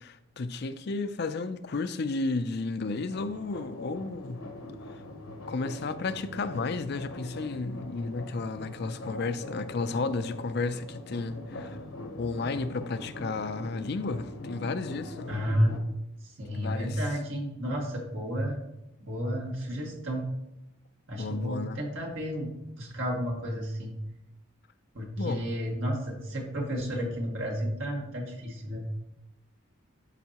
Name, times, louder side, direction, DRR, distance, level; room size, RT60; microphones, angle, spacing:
voice 1, 0.0-4.4 4.9-5.0 5.5-11.8 12.2-15.3 16.5-17.0 21.2-21.8 25.2-25.4, left 3 dB, 50° left, 0.4 m, -33 dB
sound 1, 3.1-15.8, left 2 dB, 90° left, 1.0 m, -42 dB
voice 2, 15.3-15.8 16.4-18.6 19.1-20.3 21.1-22.5 22.8-23.9 24.9-28.8, equal, 70° right, 1.8 m, -31 dB
12.0 x 4.6 x 2.9 m
head